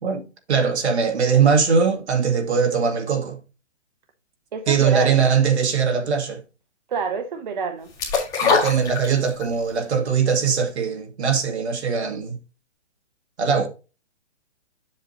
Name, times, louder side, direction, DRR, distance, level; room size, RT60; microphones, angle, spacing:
voice 1, 0.0-3.4 4.7-6.4 8.4-12.4 13.4-13.7, right 6 dB, 70° right, 2.0 m, -21 dB
voice 2, 4.5-5.2 6.9-7.9, right 5 dB, 40° right, 0.8 m, -27 dB
sound 1, 8.0-9.5 9.9-10.0, left 4 dB, 10° left, 2.0 m, -21 dB
7.6 x 7.2 x 2.8 m
hypercardioid pair, 170°, 35 cm